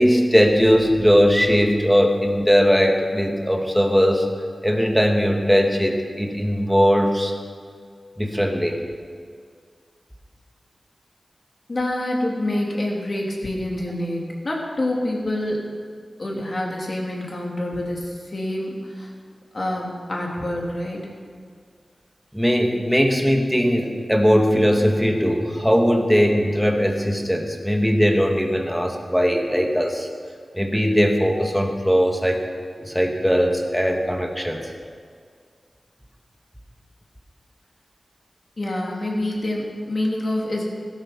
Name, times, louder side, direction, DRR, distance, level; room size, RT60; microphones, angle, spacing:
voice 1, 0.0-4.3 4.6-7.3 8.2-8.8 22.3-30.1 30.5-32.4 32.8-34.6, equal, ahead, 2 dB, 2.1 m, -19 dB
voice 2, 11.7-15.6 16.2-19.1 19.5-21.1 38.6-40.6, left 1 dB, 50° left, -2 dB, 3.4 m, -26 dB
16.5 x 13.0 x 5.5 m, 2.1 s
wide cardioid pair, 65°, 0 cm